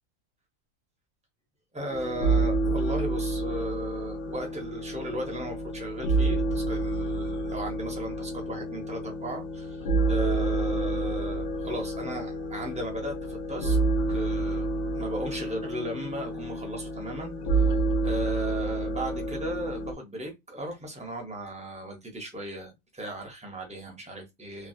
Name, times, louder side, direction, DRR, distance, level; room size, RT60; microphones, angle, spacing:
voice 1, 1.7-13.8 14.1-14.7 14.9-24.7, right 1 dB, 5° right, 0.5 m, -36 dB
sound 1, 1.9-19.9, right 2 dB, 70° left, 1.1 m, -29 dB
3.2 x 2.4 x 2.6 m
omnidirectional pair, 1.5 m